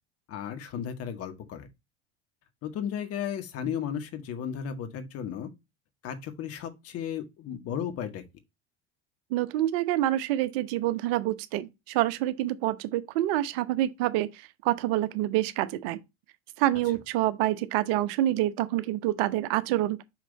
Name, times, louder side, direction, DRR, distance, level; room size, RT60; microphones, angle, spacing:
voice 1, 0.3-1.7 2.6-5.5 6.0-8.2, left 8 dB, 45° left, 1.7 m, -34 dB
voice 2, 9.3-14.3 14.6-16.0 16.6-20.0, right 14 dB, 60° right, 0.9 m, -27 dB
5.8 x 5.6 x 4.0 m
hypercardioid pair, 75°, 32 cm